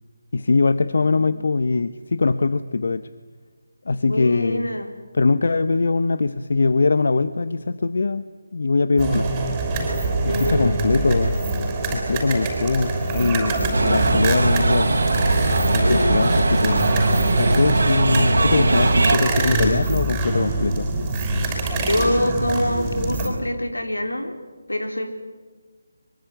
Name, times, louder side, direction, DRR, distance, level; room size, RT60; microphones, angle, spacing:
voice 1, 0.3-3.1 3.9-4.8 5.1-8.2 8.5-9.3 10.2-11.4 11.9-14.9 15.7-16.9 17.4-20.9, left 3 dB, 60° left, 13 dB, 0.9 m, -22 dB
voice 2, 4.0-4.9 9.3-9.5 10.3-11.0 15.8-16.3 21.8-24.3 24.7-25.1, left 1 dB, 85° left, 5 dB, 3.9 m, -25 dB
sound 1, 9.0-23.3, right 2 dB, 20° right, 6.2 m, -24 dB
sound 2, 13.7-19.2, right 2 dB, 65° right, 3.9 m, -20 dB
24.0 x 23.0 x 9.2 m, 1.4 s
figure-of-eight pair, 155°, 0 cm